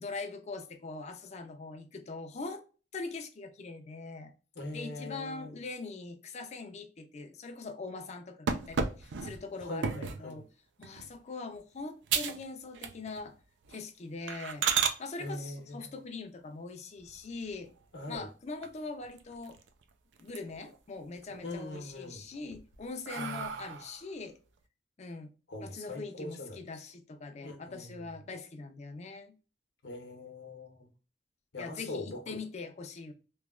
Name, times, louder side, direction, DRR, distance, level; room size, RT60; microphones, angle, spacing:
voice 1, 0.0-2.6 2.9-4.3 4.7-10.5 10.8-13.3 13.7-14.6 15.0-17.7 18.1-19.6 20.2-24.3 25.0-25.3 25.6-29.3 31.6-33.1, left 3 dB, 40° left, 0.5 m, -42 dB
voice 2, 4.6-5.5 9.6-10.5 15.2-15.9 17.9-18.3 21.4-22.2 23.2-23.7 25.5-26.6 27.4-28.0 29.8-30.9 31.5-32.4, left 2 dB, 70° left, 0.8 m, -42 dB
sound 1, 8.5-10.3 10.8-11.1 11.6-11.7 12.1-12.4 12.7-13.3 13.6-13.8 14.3-15.0 17.0-17.7 18.1-18.2 18.6-18.7 19.0-19.8 20.2-20.8 21.2-21.8 22.3-24.0, right 6 dB, 85° right, 0.4 m, -34 dB
3.1 x 2.2 x 2.3 m
head